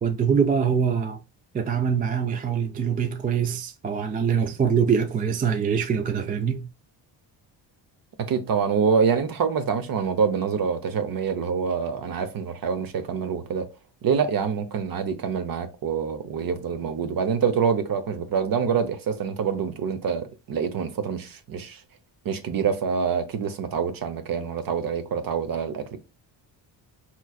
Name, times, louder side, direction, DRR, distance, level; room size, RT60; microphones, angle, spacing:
voice 1, 0.0-1.2 1.5-6.7, right 7 dB, 20° right, 0.3 m, -24 dB
voice 2, 8.2-13.7 14.0-21.8 22.2-26.0, right 6 dB, 50° right, 0.8 m, -26 dB
4.7 x 3.0 x 2.4 m
cardioid pair, 100°, 45 cm